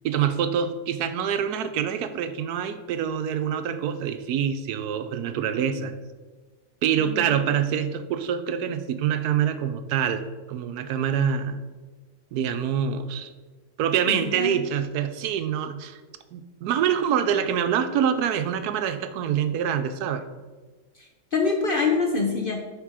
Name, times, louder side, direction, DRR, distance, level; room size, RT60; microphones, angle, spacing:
voice 1, 0.0-6.0 6.8-10.2 10.5-11.6 12.3-13.3 13.8-16.0 16.3-20.2, right 8 dB, 80° right, 9 dB, 1.1 m, -25 dB
voice 2, 6.9-7.4 14.1-14.6 21.0-22.6, left 4 dB, 50° left, 1 dB, 0.7 m, -26 dB
9.5 x 3.7 x 4.8 m, 1.3 s
omnidirectional pair, 1.7 m